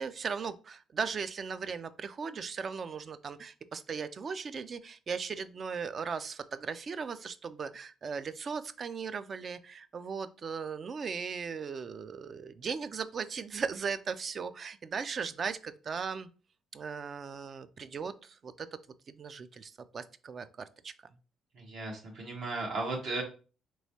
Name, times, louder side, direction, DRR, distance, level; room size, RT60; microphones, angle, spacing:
voice 1, 0.0-16.3 16.7-18.7 19.1-20.5 20.8-20.9, right 5 dB, 50° right, 13 dB, 0.3 m, -37 dB
voice 2, 21.5-23.2, right 3 dB, 70° right, 0 dB, 1.2 m, -35 dB
3.5 x 3.0 x 2.7 m, 0.36 s
supercardioid pair, 75°, 0 cm